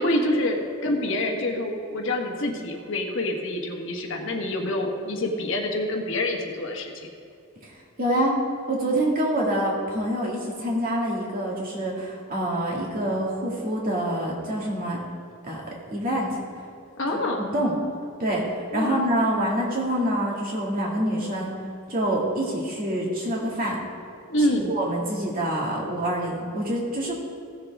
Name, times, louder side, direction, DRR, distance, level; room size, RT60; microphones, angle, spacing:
voice 1, 0.0-6.9 17.0-17.5 18.7-19.0 24.3-24.7, left 1 dB, 60° left, 2 dB, 1.3 m, -26 dB
voice 2, 8.0-8.4 8.7-15.0 15.4-15.6 15.9-16.4 17.4-17.7 18.2-21.6 21.9-23.8 24.4-27.1, right 1 dB, 40° right, -3 dB, 2.2 m, -26 dB
16.0 x 7.2 x 3.6 m, 2.6 s
head